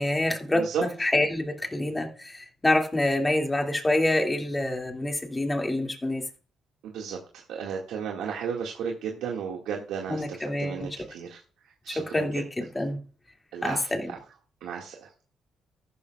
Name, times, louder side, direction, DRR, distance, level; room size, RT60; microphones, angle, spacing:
voice 1, 0.0-6.2 10.1-10.9 12.1-13.0 13.6-14.0, left 1 dB, 15° left, 2.4 m, -26 dB
voice 2, 0.5-0.8 6.8-12.4 13.5-14.2 14.6-15.1, right 7 dB, 85° right, 2.0 m, -34 dB
14.5 x 12.5 x 2.4 m
cardioid pair, 90°, 0 cm